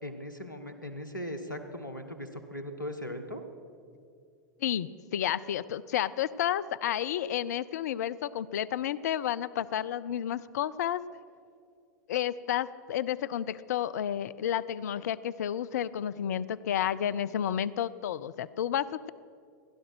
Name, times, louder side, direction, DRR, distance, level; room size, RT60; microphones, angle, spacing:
voice 1, 0.0-3.4, left 1 dB, 90° left, 7 dB, 1.2 m, -39 dB
voice 2, 4.6-11.0 12.1-19.1, left 10 dB, 60° left, 17 dB, 0.4 m, -31 dB
16.5 x 11.5 x 6.0 m, 2.3 s
figure-of-eight pair, 90°, 10 cm